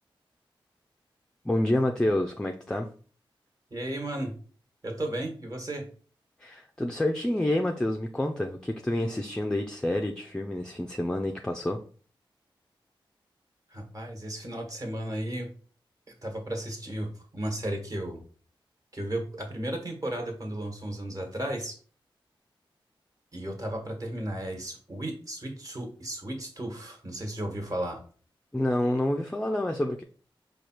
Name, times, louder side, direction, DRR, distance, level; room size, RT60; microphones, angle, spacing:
voice 1, 1.4-2.9 6.4-11.8 28.5-30.0, left 1 dB, 10° left, 4 dB, 0.4 m, -28 dB
voice 2, 3.7-4.4 4.8-5.9 13.7-15.5 16.2-18.2 18.9-21.8 23.3-28.0, right 1 dB, 40° right, 3 dB, 1.3 m, -34 dB
4.8 x 2.4 x 4.4 m, 0.41 s
wide cardioid pair, 80°, 9 cm